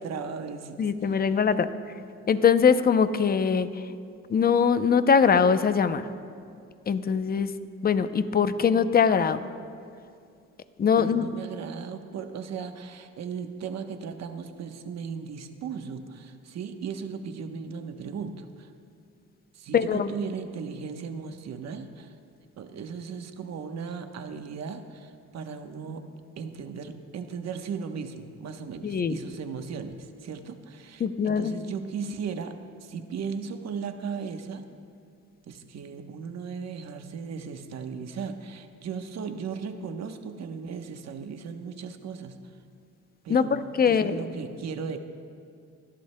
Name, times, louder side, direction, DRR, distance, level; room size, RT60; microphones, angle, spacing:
voice 1, 0.0-1.4 11.0-18.7 19.5-22.1 22.6-34.6 35.5-42.5 43.2-45.0, right 6 dB, 60° right, 6 dB, 1.0 m, -37 dB
voice 2, 0.8-1.7 2.3-3.7 4.3-6.0 6.9-7.5 7.8-9.4 10.8-11.3 19.7-20.1 28.8-29.2 31.0-31.5 43.3-44.2, left 6 dB, 30° left, 11 dB, 0.6 m, -22 dB
26.0 x 11.5 x 2.2 m, 2.3 s
cardioid pair, 90°, 30 cm